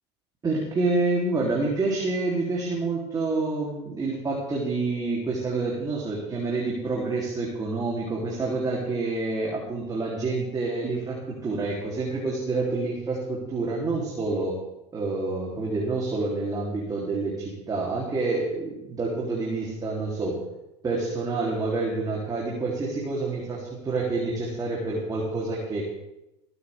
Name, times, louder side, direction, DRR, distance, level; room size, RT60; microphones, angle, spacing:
voice 1, 0.4-14.6 14.9-20.4 20.8-25.8, right 3 dB, 25° right, -4 dB, 3.6 m, -28 dB
22.5 x 9.5 x 3.7 m, 0.92 s
hypercardioid pair, 90°, 14 cm